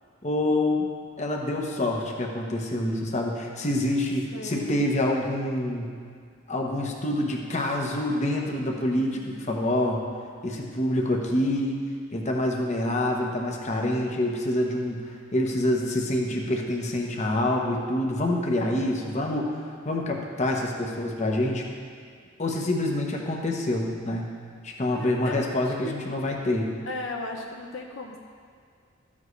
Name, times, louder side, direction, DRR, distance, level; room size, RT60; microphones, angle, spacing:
voice 1, 0.2-0.9 1.2-5.9 6.5-10.0 10.4-11.8 12.1-19.5 19.8-21.6 22.4-24.3 24.6-26.7, left 1 dB, 35° left, 0 dB, 1.0 m, -26 dB
voice 2, 4.3-4.9 9.0-9.6 24.9-25.3 25.7-25.9 26.8-28.2, left 2 dB, 65° left, 1 dB, 0.8 m, -37 dB
13.5 x 7.4 x 3.2 m, 2.1 s
head